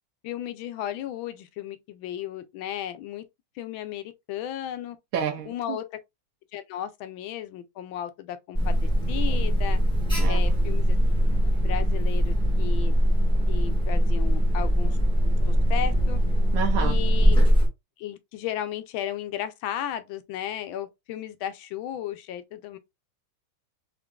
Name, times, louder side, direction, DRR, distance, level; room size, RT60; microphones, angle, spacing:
voice 1, 0.2-3.2 3.6-5.0 5.4-5.8 6.5-9.8 10.3-11.0 11.6-13.0 13.5-15.0 15.5-16.2 16.8-17.4 18.0-22.8, left 11 dB, 90° left, 1.4 m, -34 dB
voice 2, 5.1-5.8 10.2-10.4 16.5-17.0, right 8 dB, 85° right, 1.5 m, -29 dB
Alarm, 8.5-17.7, equal, 5° left, 1.2 m, -21 dB
3.8 x 3.6 x 2.2 m
omnidirectional pair, 2.1 m